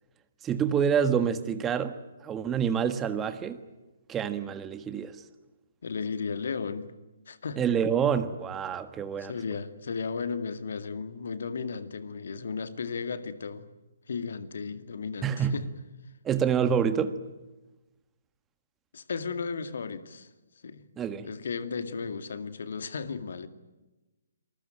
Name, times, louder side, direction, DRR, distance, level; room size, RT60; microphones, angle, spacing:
voice 1, 0.4-2.0 2.2-3.6 4.1-5.2 7.6-9.3 15.2-15.6 16.2-17.2 21.0-21.3, right 7 dB, 15° right, 1.5 m, -27 dB
voice 2, 5.8-6.9 7.3-7.6 9.2-13.7 14.1-15.7 18.9-20.3 20.6-20.8 21.2-23.5, left 5 dB, 60° left, 2.2 m, -35 dB
28.5 x 21.0 x 9.0 m
figure-of-eight pair, 135°, 0 cm